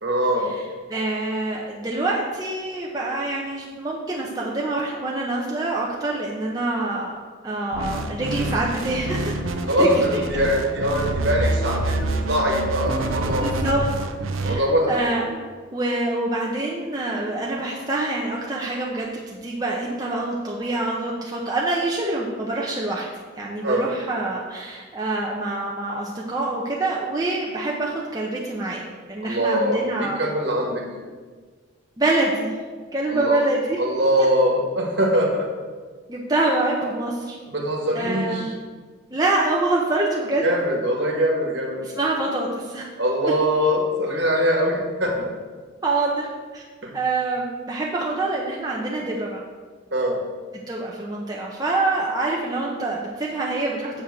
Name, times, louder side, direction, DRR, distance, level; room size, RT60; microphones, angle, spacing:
voice 1, 0.0-0.5 9.7-13.5 14.4-15.0 23.6-23.9 29.2-30.8 33.1-33.4 33.8-35.5 37.5-38.5 40.4-41.9 43.0-45.3 46.8-46.9 49.9-50.2, equal, 55° right, 0 dB, 1.4 m, -22 dB
voice 2, 0.9-7.2 7.4-9.3 9.8-9.9 13.4-13.8 14.4-23.1 23.4-30.3 32.0-32.6 32.9-33.8 36.1-37.4 37.9-38.6 39.1-40.5 41.8-42.8 45.8-46.3 46.5-46.6 46.9-49.4 50.5-54.0, right 2 dB, 20° right, -3 dB, 0.6 m, -26 dB
sound 1, 7.7-14.6, right 2 dB, 80° right, 0.6 m, -27 dB
7.3 x 3.6 x 6.5 m, 1.5 s
head